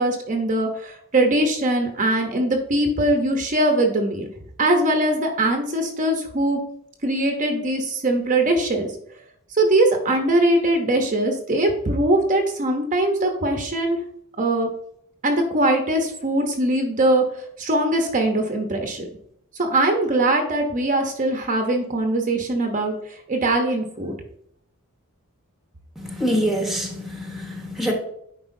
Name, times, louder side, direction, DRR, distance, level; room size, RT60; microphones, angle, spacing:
voice 1, 0.0-4.3 4.6-6.6 7.0-8.9 9.5-14.0 14.4-14.7 15.2-17.2 17.6-19.1 19.6-24.1, right 1 dB, 35° right, 3 dB, 0.8 m, -21 dB
voice 2, 26.0-27.9, equal, ahead, 2 dB, 1.1 m, -25 dB
9.6 x 4.7 x 2.7 m, 0.69 s
head